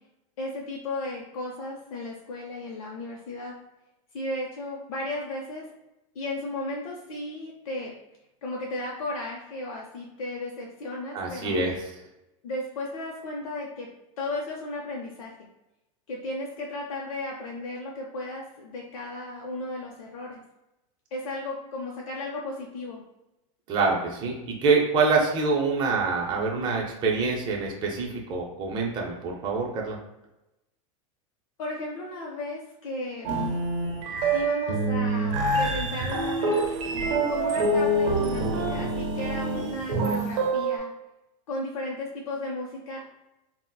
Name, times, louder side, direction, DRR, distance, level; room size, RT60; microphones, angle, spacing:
voice 1, 0.4-3.5 4.1-5.7 6.2-7.9 8.4-11.7 12.4-13.9 14.2-15.3 16.1-20.4 21.1-23.0 31.6-33.3 34.3-36.7 37.3-40.9 41.5-43.0, left 2 dB, 85° left, -2 dB, 0.6 m, -34 dB
voice 2, 11.1-11.7 23.7-30.0, right 4 dB, 25° right, -1 dB, 0.5 m, -25 dB
sound 1, 33.2-40.8, right 2 dB, 65° right, 0.6 m, -26 dB
3.9 x 2.1 x 2.2 m, 0.94 s
supercardioid pair, 145°, 18 cm